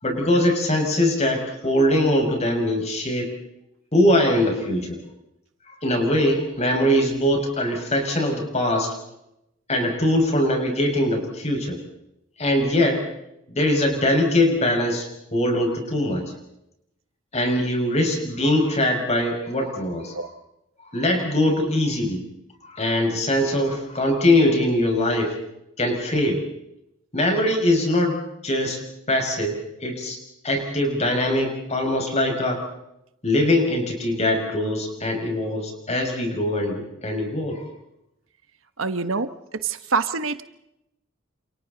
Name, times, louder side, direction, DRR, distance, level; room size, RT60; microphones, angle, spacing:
voice 1, 0.0-3.3 3.9-5.0 5.7-8.9 9.7-11.8 12.4-13.0 13.5-16.3 17.3-20.3 20.9-22.2 22.6-25.4 25.8-26.4 27.1-28.2 28.4-28.8 29.1-30.2 30.4-32.6 33.2-37.7, left 1 dB, 35° left, 3 dB, 6.2 m, -22 dB
voice 2, 38.8-39.3 39.6-40.4, right 4 dB, 90° right, 10 dB, 1.3 m, -25 dB
29.0 x 28.0 x 4.1 m, 0.84 s
head